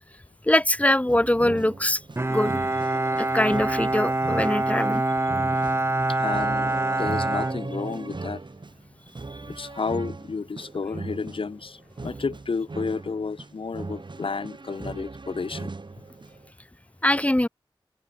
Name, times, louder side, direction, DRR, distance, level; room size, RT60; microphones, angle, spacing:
voice 1, 0.4-2.0 2.3-2.6 3.2-5.0 17.0-17.5, left 1 dB, 15° left, 1.7 m, -22 dB
sound 1, 1.1-16.5, right 3 dB, 55° right, 7.6 m, -39 dB
Bowed string instrument, 2.2-8.3, right 2 dB, 25° right, 1.1 m, -25 dB
voice 2, 6.1-8.4 9.5-15.7, left 4 dB, 75° left, 1.9 m, -31 dB
open air
wide cardioid pair, 55°, 9 cm